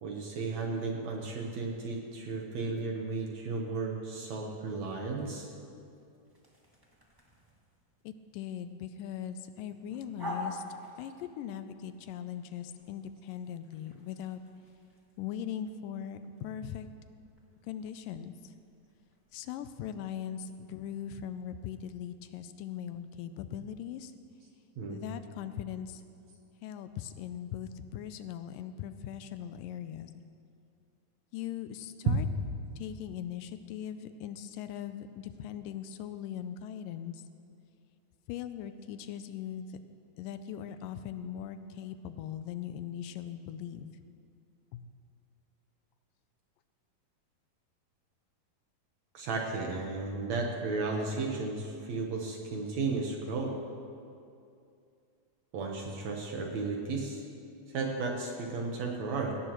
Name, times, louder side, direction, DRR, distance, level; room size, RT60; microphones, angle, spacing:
voice 1, 0.0-5.5 24.8-25.0 49.1-53.6 55.5-57.2 57.7-59.3, right 3 dB, 65° right, 0 dB, 2.0 m, -34 dB
sound 1, 4.7-21.5, left 1 dB, 15° right, 0.9 m, -50 dB
voice 2, 8.0-10.6 11.0-14.4 15.2-16.9 17.6-18.5 19.3-24.1 24.9-26.0 26.6-30.1 31.3-32.3 32.8-37.2 38.3-39.7 40.2-43.9 44.7-44.9, left 9 dB, 80° left, 10 dB, 2.1 m, -40 dB
18.0 x 17.5 x 3.1 m, 2.5 s
omnidirectional pair, 4.1 m